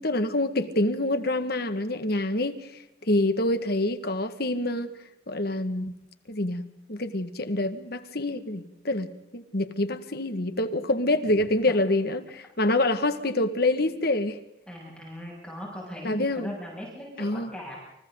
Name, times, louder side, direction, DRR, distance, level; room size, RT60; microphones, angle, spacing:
voice 1, 0.0-2.7 3.0-4.9 5.3-5.9 6.3-6.6 6.9-14.4 16.0-16.5 17.2-17.5, left 1 dB, 55° left, 9 dB, 1.9 m, -26 dB
voice 2, 14.7-17.8, equal, 5° left, -4 dB, 7.4 m, -39 dB
30.0 x 28.5 x 4.0 m, 0.81 s
head